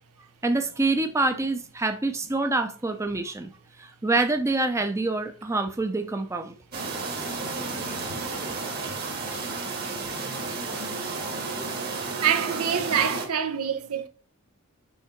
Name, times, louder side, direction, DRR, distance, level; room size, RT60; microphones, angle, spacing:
voice 1, 0.4-3.5 3.8-6.5, right 2 dB, 15° right, 0.5 m, -26 dB
sound 1, 6.7-13.3, right 3 dB, 45° right, 1.5 m, -32 dB
voice 2, 12.2-14.1, right 8 dB, 85° right, 0.8 m, -25 dB
6.4 x 3.4 x 4.5 m
head